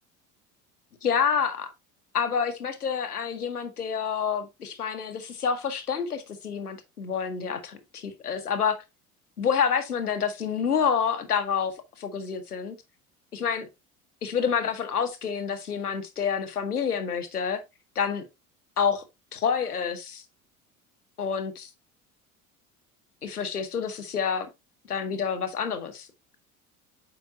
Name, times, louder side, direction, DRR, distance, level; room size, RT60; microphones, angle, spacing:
voice 1, 1.0-1.7 2.1-8.8 9.4-12.7 13.3-13.7 14.2-17.6 17.9-18.3 18.8-19.0 19.3-20.2 21.2-21.7 23.2-24.5 24.9-26.1, left 7 dB, 80° left, 1.1 m, -28 dB
7.9 x 5.2 x 2.5 m
figure-of-eight pair, 65°, 44 cm